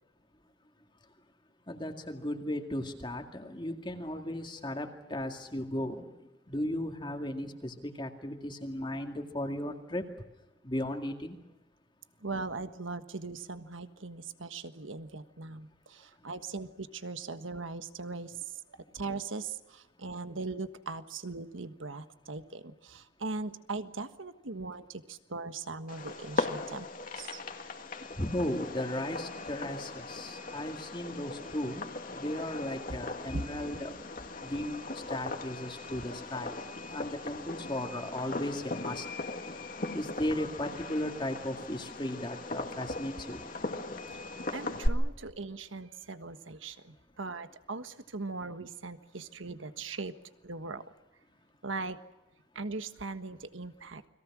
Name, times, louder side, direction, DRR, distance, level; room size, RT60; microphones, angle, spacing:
voice 1, 1.7-6.1 6.5-10.0 10.6-11.4 16.2-16.3 18.8-19.0 28.1-34.0 34.4-39.1 39.9-43.5, left 1 dB, 25° left, 4 dB, 2.1 m, -36 dB
voice 2, 12.2-26.9 27.1-27.4 33.3-33.4 44.1-50.1 50.4-50.8 51.6-52.0 52.5-54.1, right 3 dB, 80° right, 10 dB, 1.5 m, -40 dB
Fireworks, 25.9-44.9, left 2 dB, 45° left, 2.1 m, -38 dB
29.5 x 22.0 x 6.1 m, 1.0 s
head